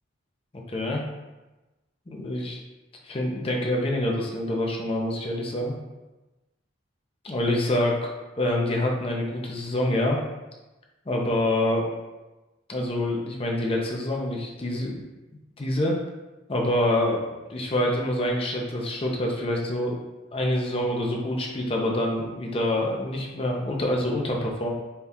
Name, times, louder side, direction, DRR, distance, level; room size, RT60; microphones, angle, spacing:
voice 1, 0.7-1.0 2.1-2.6 3.0-5.7 7.2-8.1 8.4-10.2 11.1-11.9 12.7-15.0 15.6-16.0 16.5-17.2 17.5-20.0 20.3-24.7, left 1 dB, 30° left, -1 dB, 0.6 m, -26 dB
4.2 x 2.3 x 3.5 m, 1.1 s
head